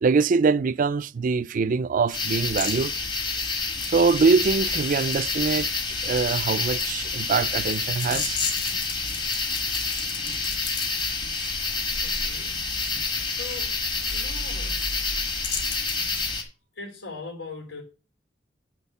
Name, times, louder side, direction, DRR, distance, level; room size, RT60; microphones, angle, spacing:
voice 1, 0.0-2.9 3.9-5.7 6.0-8.4, right 4 dB, 45° right, 0.4 m, -23 dB
sound 1, 2.1-16.4, left 4 dB, 25° left, 1.6 m, -28 dB
sound 2, 2.4-2.7 3.7-5.6 5.9-11.0 13.5-13.6 14.0-14.1 14.4-14.8 15.1-16.1, left 6 dB, 70° left, 2.6 m, -36 dB
voice 2, 12.0-12.6 13.2-13.8 14.1-14.8 16.7-17.8, left 3 dB, 85° left, 4.0 m, -40 dB
9.8 x 4.3 x 7.0 m
head